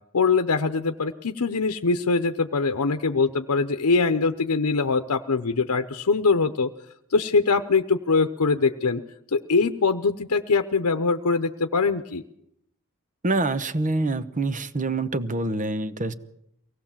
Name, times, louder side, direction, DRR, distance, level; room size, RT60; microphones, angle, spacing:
voice 1, 0.1-6.7 7.1-9.0 9.3-12.2, left 4 dB, 90° left, 8 dB, 0.8 m, -23 dB
voice 2, 13.2-16.1, right 2 dB, 35° right, 13 dB, 1.0 m, -26 dB
23.5 x 17.5 x 7.3 m, 0.77 s
head